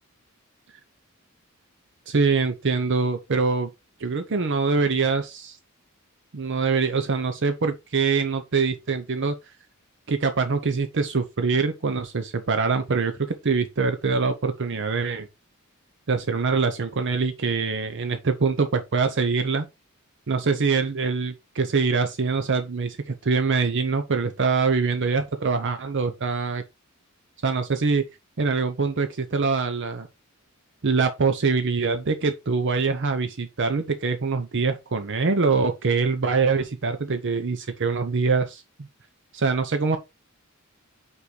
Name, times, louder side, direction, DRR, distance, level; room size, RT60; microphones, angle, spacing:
voice 1, 2.1-3.7 4.0-5.6 6.3-9.4 10.1-15.3 16.1-19.7 20.3-26.6 27.4-28.0 28.4-30.1 30.8-38.6 39.3-40.0, right 4 dB, 55° right, 0.7 m, -24 dB
5.7 x 4.8 x 3.8 m
head